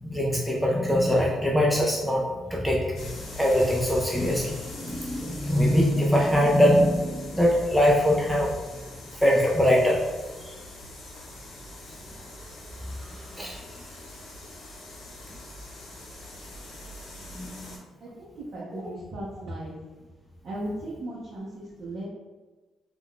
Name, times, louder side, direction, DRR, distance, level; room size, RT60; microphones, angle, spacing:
voice 1, 0.0-8.5 9.1-10.0 10.4-10.6 13.4-13.6 17.3-17.7 18.7-18.9, equal, ahead, -3 dB, 0.4 m, -23 dB
sound 1, 2.9-17.8, left 1 dB, 75° left, 0.9 m, -43 dB
voice 2, 18.0-19.7 20.4-22.1, right 1 dB, 55° right, -7 dB, 0.7 m, -36 dB
2.4 x 2.2 x 3.6 m, 1.3 s
cardioid pair, 90°, 0 cm